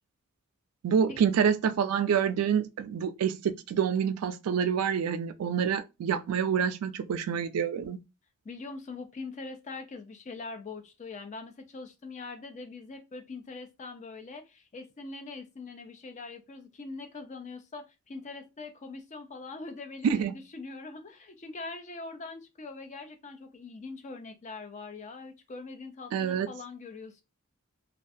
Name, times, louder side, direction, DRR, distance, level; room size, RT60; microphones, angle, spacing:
voice 1, 0.8-8.0 20.0-20.3 26.1-26.5, right 7 dB, 85° right, 0.3 m, -27 dB
voice 2, 8.4-27.2, left 3 dB, 35° left, 0.4 m, -42 dB
2.3 x 2.2 x 2.6 m
head